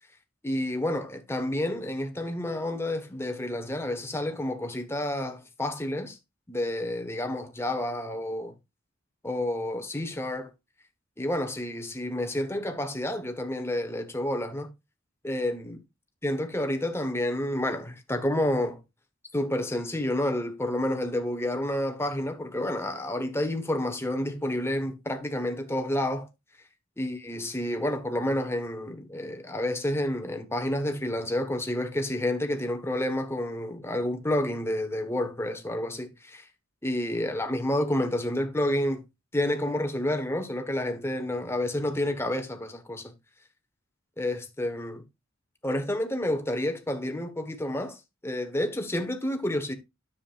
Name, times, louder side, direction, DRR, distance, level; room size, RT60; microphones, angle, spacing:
voice 1, 0.4-6.2 6.5-8.5 9.2-10.5 11.2-14.7 15.2-15.8 16.2-18.8 19.3-26.3 27.0-36.5 36.8-39.0 39.3-43.1 44.2-45.0 45.6-49.7, left 1 dB, 10° left, 1.3 m, -29 dB
10.0 x 7.3 x 2.5 m
head